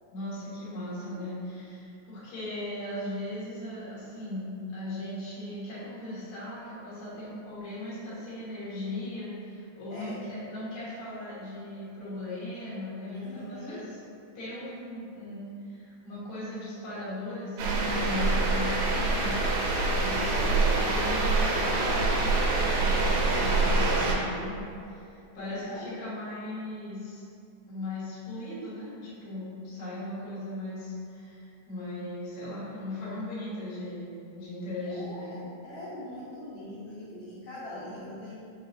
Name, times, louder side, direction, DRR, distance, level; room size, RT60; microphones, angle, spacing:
voice 1, 0.1-14.0 14.3-27.2 27.7-35.3, left 1 dB, 50° left, -10 dB, 1.7 m, -38 dB
voice 2, 9.9-10.2 13.1-13.8 25.4-26.0 34.8-38.4, left 1 dB, 70° left, -11 dB, 1.8 m, -42 dB
sound 1, 17.6-24.2, right 3 dB, 80° right, 2.1 m, -25 dB
5.1 x 3.8 x 2.6 m, 2.5 s
omnidirectional pair, 4.1 m